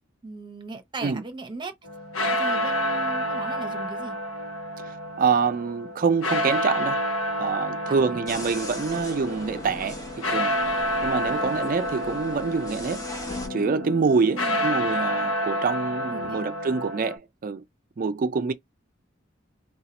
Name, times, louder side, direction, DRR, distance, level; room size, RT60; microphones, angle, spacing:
voice 1, 0.2-1.7 2.4-4.1 7.9-8.2 11.3-11.5 14.2-14.7 16.0-16.4, right 3 dB, 25° right, 0.8 m, -38 dB
sound 1, 1.8-17.2, equal, 85° left, 1.2 m, -29 dB
voice 2, 4.8-7.0 7.4-10.6 11.0-13.1 13.5-17.6 18.0-18.5, right 5 dB, 45° right, 0.4 m, -26 dB
sound 2, 8.3-13.5, left 1 dB, 20° left, 0.9 m, -38 dB
sound 3, 11.3-11.9 13.3-15.3, left 4 dB, 35° left, 0.3 m, -41 dB
2.8 x 2.3 x 4.0 m
head